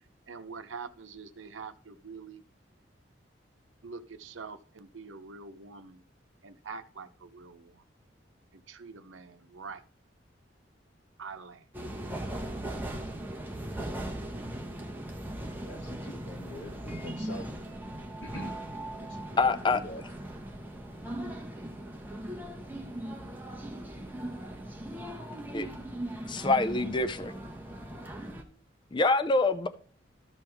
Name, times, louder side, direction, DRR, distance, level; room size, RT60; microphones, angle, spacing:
voice 1, 0.3-2.4 3.8-6.0 6.4-7.8 8.5-9.8 11.2-11.6, right 5 dB, 90° right, 0.8 m, -45 dB
sound 1, 11.7-28.4, right 1 dB, 10° right, 1.1 m, -39 dB
voice 2, 15.6-17.5 18.2-18.6 18.9-20.0, left 1 dB, 80° left, 2.1 m, -45 dB
voice 3, 19.4-19.8 25.5-25.7 26.3-27.3 28.9-29.7, left 3 dB, 25° left, 0.4 m, -25 dB
13.5 x 5.3 x 3.5 m
head